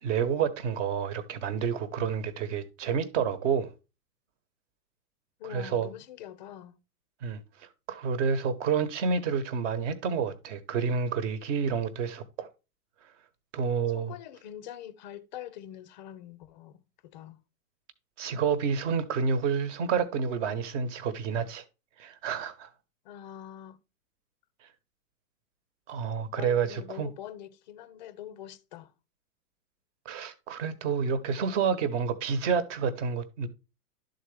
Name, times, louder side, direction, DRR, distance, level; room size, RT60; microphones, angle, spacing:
voice 1, 0.0-3.7 5.4-5.9 7.2-12.5 13.5-14.1 18.2-21.6 22.0-22.7 25.9-27.1 30.0-33.5, right 6 dB, 50° right, 1.2 m, -29 dB
voice 2, 5.4-6.7 13.9-17.4 23.0-23.8 26.4-28.9, left 11 dB, 30° left, 0.4 m, -44 dB
11.5 x 3.9 x 3.3 m
hypercardioid pair, 135°, 49 cm